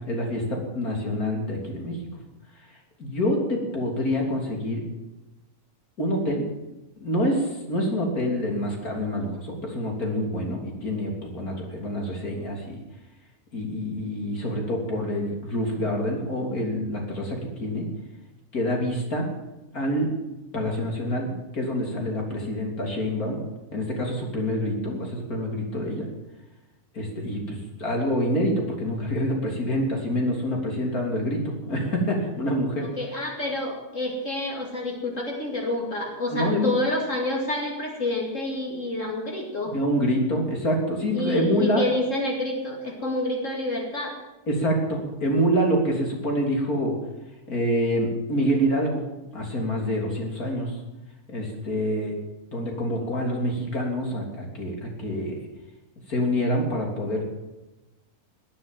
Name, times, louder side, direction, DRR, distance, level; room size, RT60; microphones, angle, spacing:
voice 1, 0.1-2.0 3.0-4.8 6.0-6.5 7.0-12.8 13.5-17.9 18.5-19.3 19.7-20.1 20.5-23.4 23.7-26.1 26.9-32.9 36.3-36.7 39.6-41.9 44.5-47.0 47.5-49.1 49.3-50.8 51.3-52.1 52.5-55.4 56.1-57.3, equal, 75° left, 1 dB, 3.8 m, -26 dB
voice 2, 32.8-39.7 41.1-44.1, left 1 dB, 55° left, 0 dB, 2.8 m, -28 dB
19.0 x 9.6 x 7.4 m, 1.0 s
omnidirectional pair, 1.6 m